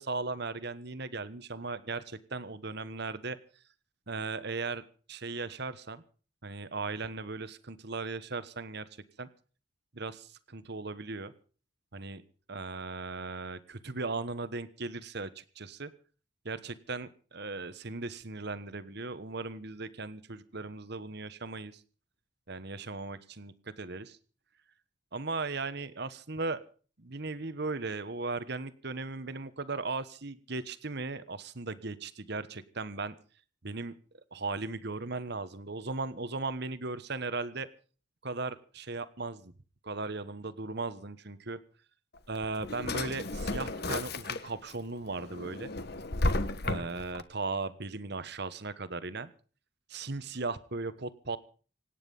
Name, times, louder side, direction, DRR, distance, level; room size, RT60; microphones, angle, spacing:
voice 1, 0.0-3.4 4.1-4.8 5.1-6.0 6.4-8.9 9.2-9.3 9.9-11.3 11.9-12.2 12.5-15.9 16.4-21.8 22.5-24.2 25.1-26.6 27.0-33.1 33.6-33.9 34.3-37.7 38.2-39.5 39.8-41.6 42.3-45.7 46.6-49.3 49.9-51.4, right 3 dB, 50° right, 14 dB, 1.3 m, -37 dB
Drawer open or close, 42.2-44.7 45.2-47.2, left 2 dB, 50° left, 1.4 m, -33 dB
26.0 x 10.0 x 5.5 m, 0.41 s
head